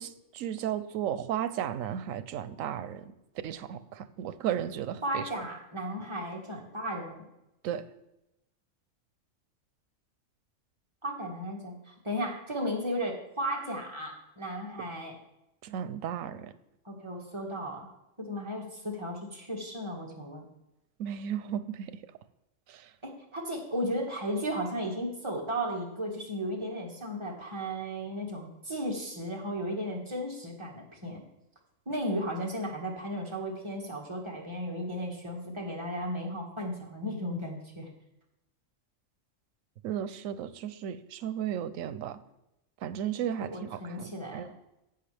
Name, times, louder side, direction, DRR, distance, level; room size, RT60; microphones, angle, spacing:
voice 1, 0.0-3.1 3.4-5.3 7.6-7.9 14.8-14.9 15.6-16.5 21.0-22.0 22.7-22.9 39.8-42.2 42.8-44.5, right 10 dB, 90° right, 1.0 m, -34 dB
voice 2, 5.0-7.2 11.0-15.2 16.9-17.9 18.2-20.5 23.0-31.2 31.9-37.9 43.5-44.5, equal, 20° right, 1.8 m, -35 dB
11.5 x 8.1 x 3.4 m
omnidirectional pair, 1.3 m